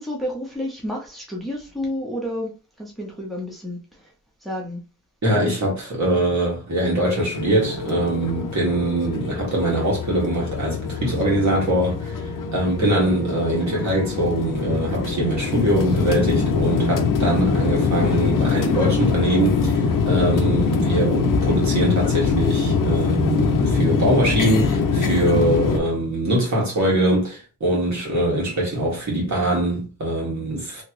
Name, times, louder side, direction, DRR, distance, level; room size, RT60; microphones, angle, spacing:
voice 1, 0.0-2.5 2.8-3.8 4.4-4.8, left 1 dB, ahead, 0.9 m, -30 dB
voice 2, 5.2-12.2 12.5-30.8, right 1 dB, 60° right, 1.7 m, -22 dB
sound 1, 7.3-25.8, left 5 dB, 85° left, 0.6 m, -23 dB
3.2 x 2.9 x 3.0 m
wide cardioid pair, 170°, 32 cm